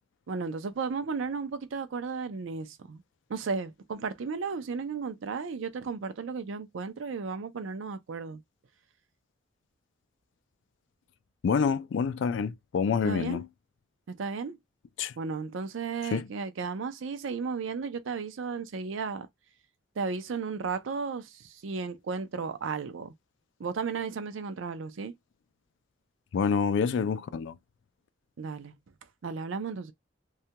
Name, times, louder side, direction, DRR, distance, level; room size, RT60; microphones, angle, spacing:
voice 1, 0.3-3.0 3.3-8.4 13.0-13.4 14.1-14.6 15.2-19.3 20.0-23.1 23.6-25.1 28.4-28.7 29.2-29.9, right 5 dB, 75° right, 0.5 m, -34 dB
voice 2, 11.4-13.5 15.0-15.1 16.1-16.2 26.3-27.5, left 6 dB, 65° left, 0.3 m, -27 dB
2.3 x 2.2 x 2.8 m
head